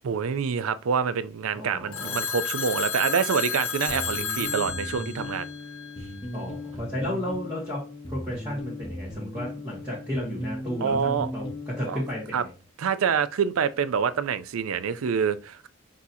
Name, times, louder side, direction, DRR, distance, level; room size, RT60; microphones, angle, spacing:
voice 1, 0.0-5.5 10.8-11.3 11.9-12.0 12.3-12.4 12.8-15.7, right 6 dB, 85° right, 0.4 m, -26 dB
voice 2, 1.5-2.2 6.3-12.5, equal, 15° right, 1.5 m, -33 dB
Telephone, 1.9-6.2, left 6 dB, 85° left, 0.7 m, -32 dB
sound 1, 3.9-12.3, left 1 dB, 25° left, 0.8 m, -37 dB
6.1 x 2.8 x 2.7 m
head